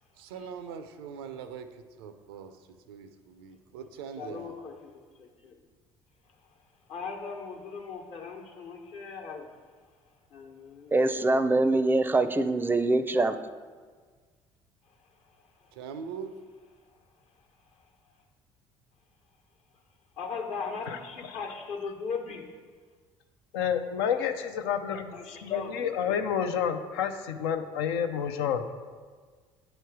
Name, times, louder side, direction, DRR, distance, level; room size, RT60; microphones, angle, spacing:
voice 1, 0.2-4.5 15.7-16.4, right 6 dB, 90° right, 9 dB, 0.4 m, -42 dB
voice 2, 4.2-5.6 6.9-9.5 10.3-11.7 15.3-15.4 20.2-22.5 25.1-26.2, left 5 dB, 60° left, 2 dB, 1.1 m, -39 dB
voice 3, 10.9-13.3, right 2 dB, 15° right, 11 dB, 0.4 m, -24 dB
voice 4, 23.5-28.6, left 8 dB, 85° left, 7 dB, 0.5 m, -29 dB
9.0 x 3.1 x 4.7 m, 1.5 s
hypercardioid pair, 65°, 12 cm